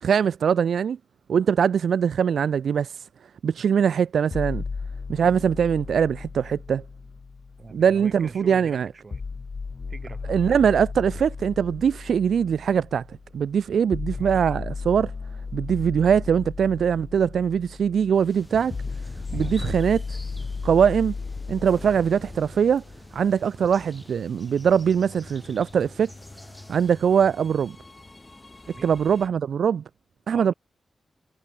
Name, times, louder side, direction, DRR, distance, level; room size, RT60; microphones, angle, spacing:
voice 1, 0.0-1.0 1.3-2.9 3.4-4.6 5.1-6.8 7.7-8.9 10.3-15.1 15.5-18.7 19.3-20.2 20.6-21.1 21.5-22.8 23.1-26.1 26.7-27.8 28.8-29.8 30.3-30.5, right 7 dB, 75° right, 0.3 m, -22 dB
sound 1, 4.3-8.3 9.1-23.1, left 4 dB, 40° left, 0.5 m, -35 dB
voice 2, 7.6-9.2 9.9-10.2 14.1-14.4 19.3-19.6 28.7-29.0 30.3-30.5, right 4 dB, 35° right, 2.4 m, -42 dB
sound 2, 18.1-29.3, left 2 dB, 20° left, 1.5 m, -47 dB
sound 3, 18.3-26.9, left 1 dB, 5° left, 4.3 m, -45 dB
wide cardioid pair, 135°, 0 cm